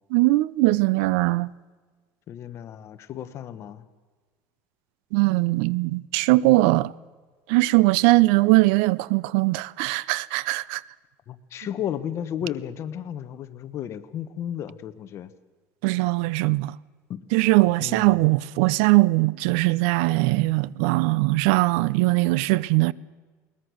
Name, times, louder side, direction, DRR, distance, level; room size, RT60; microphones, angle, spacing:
voice 1, 0.1-1.5 5.1-6.9 7.5-10.8 15.8-16.7 17.3-22.9, right 21 dB, 85° right, 0.5 m, -20 dB
voice 2, 2.3-3.8 11.3-15.3 17.1-17.2 17.8-18.2, left 10 dB, 40° left, 1.1 m, -33 dB
21.5 x 19.5 x 6.3 m
cardioid pair, 145°, 7 cm